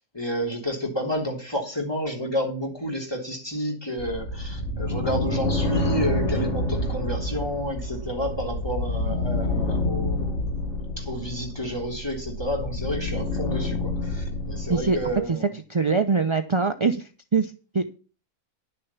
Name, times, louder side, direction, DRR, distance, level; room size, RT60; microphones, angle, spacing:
voice 1, 0.1-10.6 11.0-15.5, equal, 15° left, 1 dB, 3.2 m, -30 dB
sound 1, 4.0-15.2, left 2 dB, 50° left, 2.0 m, -28 dB
voice 2, 15.3-17.9, right 4 dB, 35° right, 7 dB, 0.5 m, -24 dB
11.0 x 6.8 x 7.1 m, 0.35 s
omnidirectional pair, 1.6 m